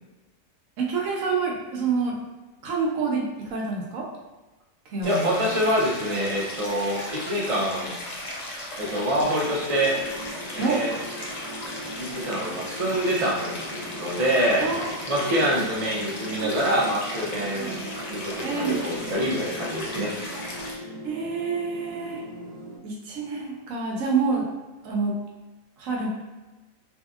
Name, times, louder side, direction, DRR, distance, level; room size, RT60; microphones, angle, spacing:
voice 1, 0.8-2.3 2.6-4.1 4.9-5.5 10.6-10.8 14.6-15.4 16.4-16.5 17.6-17.7 18.4-19.0 21.0-22.2 22.8-24.5 24.8-25.2 25.8-26.1, right 4 dB, 75° right, -2 dB, 1.0 m, -27 dB
Stream, 5.0-20.7, left 1 dB, 85° left, 0.3 m, -36 dB
voice 2, 5.0-7.9 8.8-10.0 10.5-10.9 12.0-14.7 15.1-17.8 18.1-20.1, equal, 50° right, -4 dB, 0.4 m, -25 dB
sound 1, 9.1-22.8, equal, 35° left, 0.9 m, -40 dB
2.7 x 2.6 x 2.3 m, 1.1 s
omnidirectional pair, 1.4 m